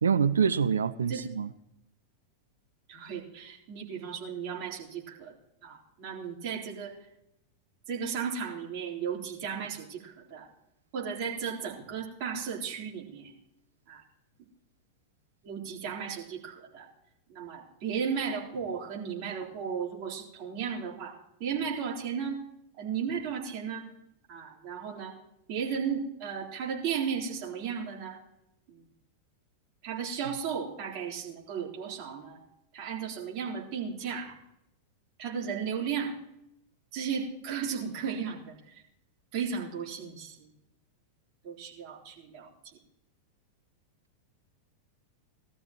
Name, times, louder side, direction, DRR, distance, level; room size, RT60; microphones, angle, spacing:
voice 1, 0.0-1.5, right 6 dB, 70° right, 12 dB, 0.5 m, -25 dB
voice 2, 2.9-5.3 5.6-6.9 7.9-10.5 10.9-13.3 13.9-14.0 15.4-16.9 17.3-22.4 22.8-23.8 24.3-25.1 25.5-28.2 28.7-28.8 29.8-32.4 32.7-34.4 35.2-36.2 36.9-38.8 39.3-40.5 41.4-42.8, right 7 dB, 45° right, -3 dB, 3.9 m, -35 dB
20.5 x 13.5 x 3.1 m, 0.83 s
figure-of-eight pair, 90°, 0 cm